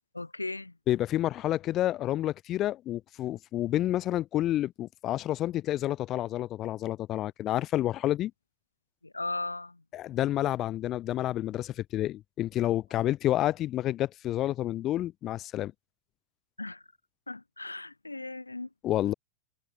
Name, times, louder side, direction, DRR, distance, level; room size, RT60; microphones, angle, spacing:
voice 1, 0.1-0.8 9.0-9.8 16.6-16.9 17.3-18.7, left 2 dB, 85° left, 1.2 m, -37 dB
voice 2, 0.9-8.3 9.9-15.7 18.8-19.1, left 13 dB, 35° left, 1.1 m, -29 dB
figure-of-eight pair, 90°, 0 cm